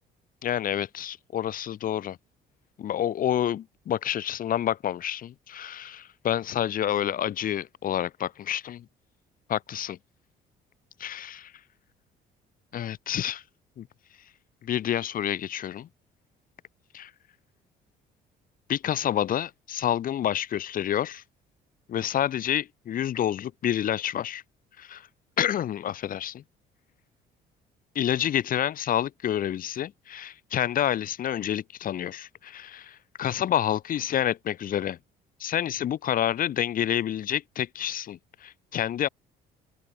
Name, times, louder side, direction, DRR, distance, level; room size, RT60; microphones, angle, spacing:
voice 1, 0.4-2.2 2.8-8.9 9.5-10.0 11.0-11.5 12.7-13.4 13.8-13.9 14.6-15.9 16.9-17.1 18.7-21.2 21.9-24.4 24.8-25.1 25.4-26.4 27.9-35.0 35.4-39.1, left 10 dB, 55° left, 2.4 m, -28 dB
open air
cardioid pair, 110°, 17 cm